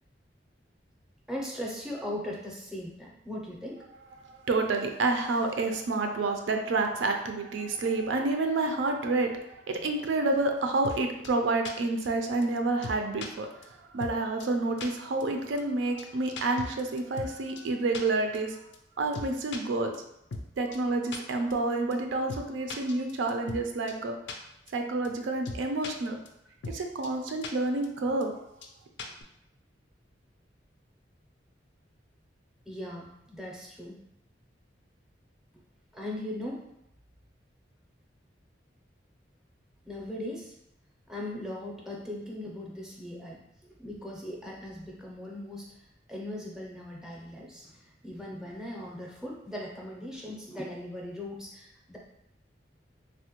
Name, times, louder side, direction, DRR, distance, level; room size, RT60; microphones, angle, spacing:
voice 1, 1.3-3.8 32.7-34.0 35.9-36.7 39.9-40.5 41.1-45.7 46.1-52.0, left 1 dB, 5° right, -3 dB, 0.5 m, -39 dB
voice 2, 4.3-18.6 19.0-19.9 20.6-24.2 24.7-26.2 26.7-28.3, right 2 dB, 85° right, 4 dB, 0.4 m, -29 dB
sound 1, 10.8-11.0 11.2-11.3 11.7-11.8 12.0-12.1 12.4-12.5 12.8-13.3 13.6-13.7 14.0-14.1 14.4-14.5 14.8-14.9 15.2-15.3 15.6-15.7 16.0-16.1 16.4-17.3 17.6-17.7 17.9-18.0 18.3-18.4 18.7-18.8 19.1-19.6 19.9-20.0 20.3-20.5 20.7-20.8 21.1-21.2 21.5-21.6 21.9-22.0 22.3-22.4 22.7-23.6 23.9-24.0 24.3-24.4 24.7-24.8 25.0-25.1 25.5-25.9 26.3-26.4 26.6-26.8 27.0-27.1 27.4-27.5 27.8-27.9 28.2-28.3 28.6-28.7 29.0-29.2, left 3 dB, 70° left, 0.4 m, -38 dB
3.3 x 2.1 x 2.9 m, 0.81 s
head